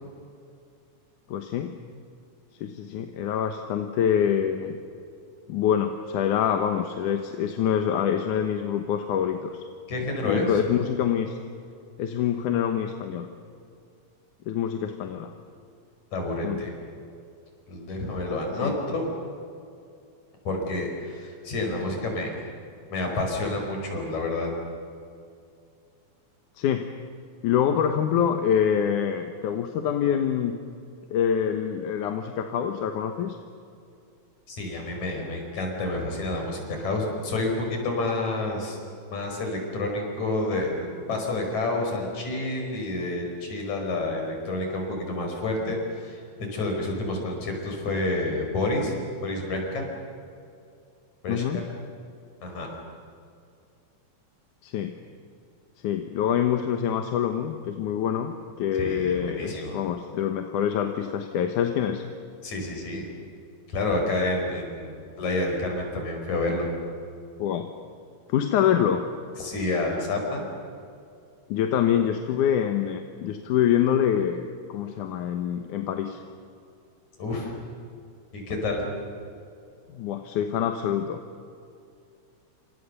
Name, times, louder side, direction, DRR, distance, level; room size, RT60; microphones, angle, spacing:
voice 1, 1.3-1.8 2.6-4.8 5.5-9.6 10.2-11.4 12.0-13.3 14.5-15.3 16.4-16.6 18.6-18.8 26.6-26.9 27.4-30.6 31.1-33.4 51.3-51.7 54.6-54.9 55.8-62.0 67.4-67.7 68.3-69.1 71.5-76.2 79.9-81.2, left 9 dB, 90° left, 6 dB, 2.7 m, -25 dB
voice 2, 9.9-10.5 16.1-16.7 17.7-19.1 20.4-22.5 22.9-24.5 34.5-38.8 39.1-46.2 46.5-49.8 51.2-51.6 52.4-52.7 58.8-59.8 62.4-63.1 63.7-66.7 69.4-70.4 77.2-77.5 78.3-78.8, left 2 dB, 70° left, 2 dB, 6.4 m, -29 dB
28.5 x 26.5 x 6.8 m, 2.5 s
omnidirectional pair, 3.4 m